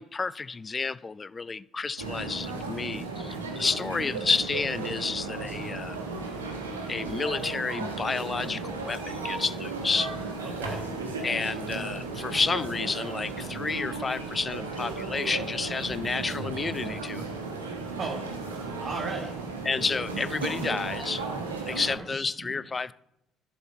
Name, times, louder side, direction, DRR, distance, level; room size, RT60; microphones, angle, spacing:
voice 1, 0.0-6.0 6.9-10.1 11.2-17.3 19.6-21.2 21.7-22.9, left 4 dB, 30° left, 0.3 m, -30 dB
sound 1, 2.0-22.0, right 3 dB, 85° right, 1.1 m, -35 dB
voice 2, 10.4-11.0 17.8-18.2 18.8-19.3 21.7-22.2 22.5-22.6, right 3 dB, 40° right, 1.2 m, -37 dB
11.0 x 4.4 x 5.3 m
hypercardioid pair, 50°, 0 cm